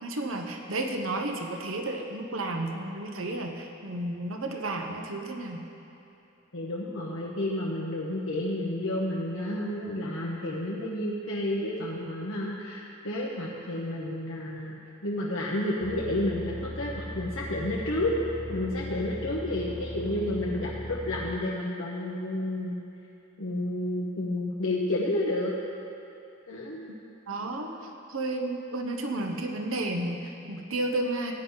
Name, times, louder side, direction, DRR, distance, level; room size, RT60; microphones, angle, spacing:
voice 1, 0.0-5.7 27.3-31.3, right 2 dB, 90° right, 2 dB, 1.1 m, -32 dB
voice 2, 6.5-18.1 18.5-22.8 23.4-25.5 26.5-26.9, left 1 dB, 80° left, -4 dB, 1.1 m, -31 dB
sound 1, 15.8-21.4, left 1 dB, 15° left, 0.4 m, -39 dB
15.5 x 9.7 x 4.0 m, 2.9 s
head